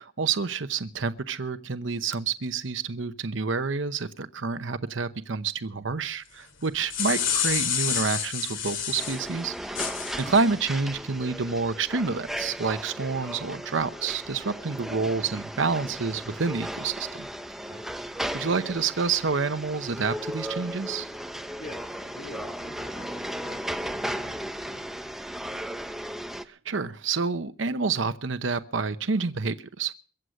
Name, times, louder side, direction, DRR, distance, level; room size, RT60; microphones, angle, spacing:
voice 1, 0.0-17.3 18.3-21.1 26.4-29.9, right 4 dB, 80° right, 0.8 m, -28 dB
sound 1, 6.6-9.2 9.7-10.4, left 8 dB, 80° left, 2.3 m, -28 dB
sound 2, 9.0-26.4, equal, ahead, 0.7 m, -36 dB
voice 2, 17.7-18.1 21.6-24.9, left 1 dB, 60° left, 4.2 m, -46 dB
22.5 x 8.0 x 6.4 m
head